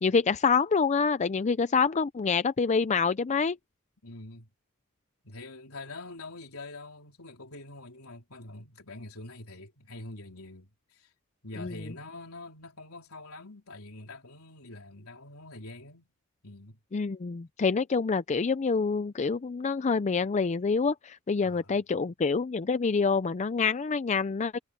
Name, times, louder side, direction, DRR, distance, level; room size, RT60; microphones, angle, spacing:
voice 1, 0.0-3.6 11.6-11.7 16.9-24.6, left 5 dB, 35° left, 0.4 m, -26 dB
voice 2, 4.0-4.5 5.2-11.1 11.4-16.1 16.4-16.8 21.4-21.8, left 2 dB, 75° left, 4.1 m, -45 dB
head